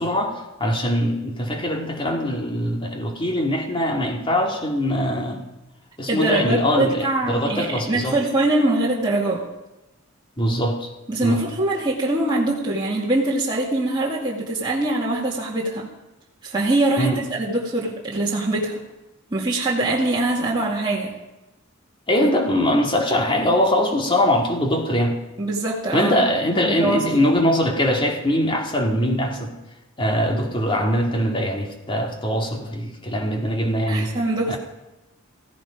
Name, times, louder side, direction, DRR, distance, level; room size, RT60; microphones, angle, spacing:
voice 1, 0.0-5.4 6.0-8.2 10.4-10.9 11.2-11.4 17.0-17.2 22.1-25.2 25.9-29.5 30.0-34.1 34.5-34.6, equal, 25° left, 2 dB, 2.4 m, -22 dB
voice 2, 6.1-9.4 11.1-15.9 16.4-18.8 19.3-21.1 22.2-22.3 25.4-26.2 26.5-27.0 33.9-34.6, right 2 dB, 20° right, -5 dB, 2.3 m, -23 dB
17.0 x 15.5 x 5.1 m, 0.99 s
head